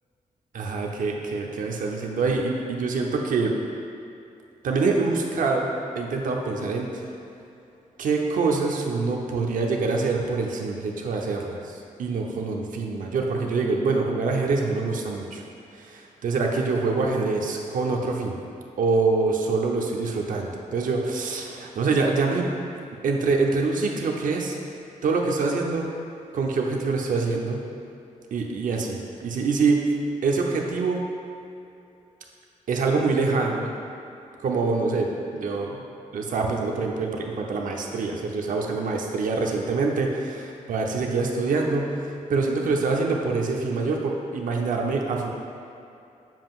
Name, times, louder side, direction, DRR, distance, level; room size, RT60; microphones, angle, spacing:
voice 1, 0.5-3.6 4.6-7.0 8.0-15.4 15.7-18.4 18.8-22.5 23.0-24.6 25.0-25.9 26.3-27.7 28.3-29.9 30.2-31.0 32.7-33.7 34.4-35.8 36.1-45.3, right 4 dB, 80° right, 1 dB, 0.8 m, -25 dB
7.6 x 7.3 x 2.4 m, 2.7 s
wide cardioid pair, 150°, 14 cm